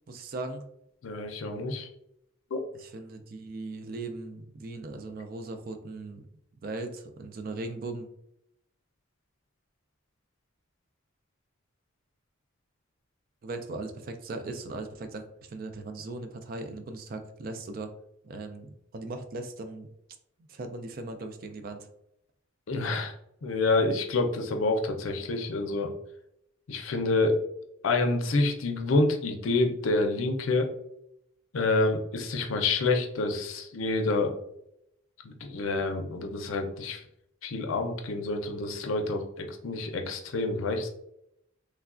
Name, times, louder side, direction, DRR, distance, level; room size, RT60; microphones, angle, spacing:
voice 1, 0.1-0.6 2.8-6.3 6.6-8.1 13.4-17.9 18.2-19.9 20.5-21.9, right 2 dB, 45° right, 7 dB, 0.3 m, -38 dB
voice 2, 1.0-1.9 2.5-2.6 22.7-23.1 23.4-25.9 26.7-27.4 27.8-30.7 31.5-34.4 35.2-37.0 37.4-40.9, left 2 dB, 85° left, 4 dB, 0.5 m, -28 dB
3.2 x 2.2 x 2.4 m, 0.76 s
head